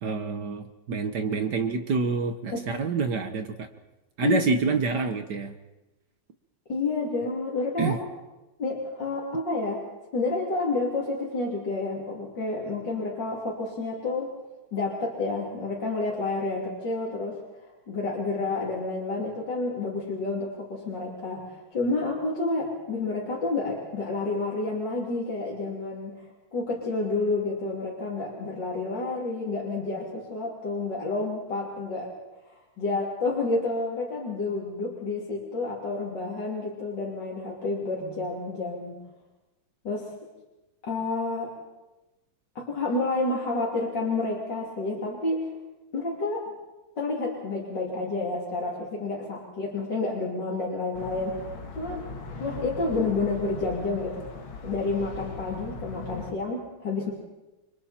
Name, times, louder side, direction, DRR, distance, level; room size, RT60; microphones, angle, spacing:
voice 1, 0.0-3.7 4.2-5.5 7.8-8.0, right 4 dB, 60° right, 7 dB, 1.6 m, -27 dB
voice 2, 6.7-8.0 8.6-9.8 10.1-14.3 14.7-17.4 17.9-26.1 26.5-32.1 32.5-39.0 39.8-40.1 40.8-41.5 42.6-45.5 45.9-46.5 47.0-51.4 51.8-52.0 52.4-54.3 54.6-57.1, left 3 dB, 60° left, -4 dB, 3.9 m, -29 dB
sound 1, 50.9-56.3, left 4 dB, 80° left, 2.5 m, -39 dB
29.0 x 24.5 x 4.4 m, 1.0 s
omnidirectional pair, 2.2 m